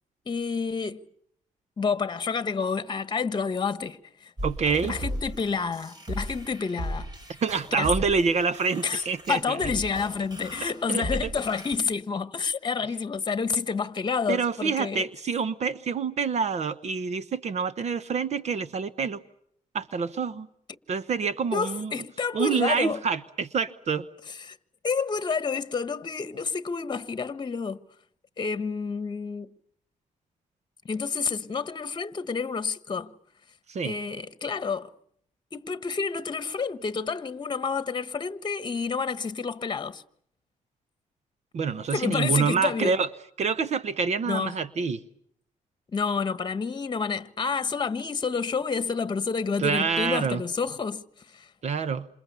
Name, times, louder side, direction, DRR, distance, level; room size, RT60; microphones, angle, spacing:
voice 1, 0.2-1.1 1.8-4.3 4.8-7.1 7.8-7.9 8.8-9.0 9.3-15.1 21.5-23.0 24.3-24.6 24.8-27.9 28.4-29.5 30.8-33.1 33.8-34.9 35.5-40.0 41.9-43.0 44.3-44.6 45.9-51.5, left 5 dB, 35° left, 1.4 m, -29 dB
sound 1, 4.4-11.8, equal, 30° right, 5.9 m, -36 dB
voice 2, 4.4-4.9 7.4-9.6 10.9-11.0 14.3-19.2 19.7-20.5 20.9-21.9 22.3-24.1 33.7-33.9 41.5-43.1 43.4-45.0 49.6-50.4 51.6-52.1, right 5 dB, 55° right, 1.1 m, -27 dB
28.0 x 28.0 x 7.0 m
wide cardioid pair, 140°, 14 cm